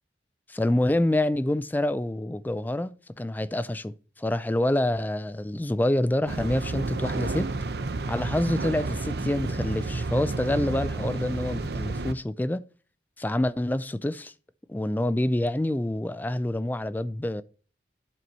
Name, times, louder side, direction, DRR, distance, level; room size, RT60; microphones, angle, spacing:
voice 1, 0.5-7.5 8.1-12.6 13.2-14.3 14.7-17.4, left 1 dB, 10° left, 0.3 m, -27 dB
sound 1, 6.3-12.1, right 3 dB, 65° right, 0.6 m, -31 dB
11.0 x 4.6 x 4.0 m
head